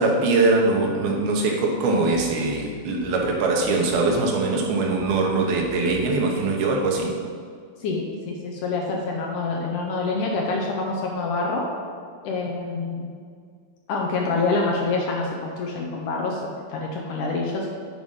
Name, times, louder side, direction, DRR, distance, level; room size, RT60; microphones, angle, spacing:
voice 1, 0.0-7.1, right 3 dB, 80° right, 0 dB, 3.0 m, -22 dB
voice 2, 7.8-11.7 12.2-13.1 13.9-17.7, left 3 dB, 75° left, 0 dB, 2.0 m, -26 dB
9.1 x 5.1 x 5.6 m, 2.1 s
omnidirectional pair, 4.3 m